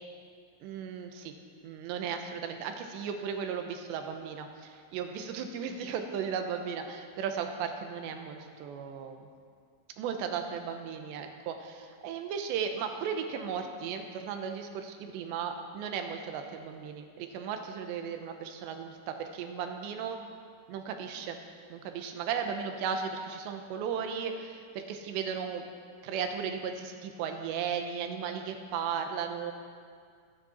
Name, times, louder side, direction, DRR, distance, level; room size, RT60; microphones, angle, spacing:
voice 1, 0.6-1.3 1.6-9.3 10.0-20.2 20.7-21.4 21.7-25.6 26.0-29.5, right 7 dB, 85° right, 5 dB, 3.2 m, -36 dB
22.5 x 10.0 x 4.3 m, 2.1 s
omnidirectional pair, 5.0 m